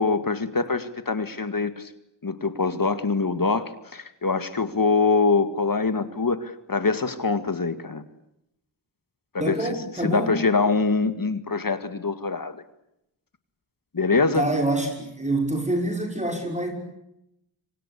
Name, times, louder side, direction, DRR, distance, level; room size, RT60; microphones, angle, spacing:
voice 1, 0.0-1.9 2.2-8.0 9.3-9.7 10.0-12.6 13.9-14.5, left 4 dB, 50° left, 11 dB, 2.1 m, -24 dB
voice 2, 9.4-10.4 14.3-16.7, right 1 dB, 15° right, 2 dB, 6.1 m, -26 dB
26.5 x 25.0 x 8.3 m, 0.82 s
wide cardioid pair, 65°, 45 cm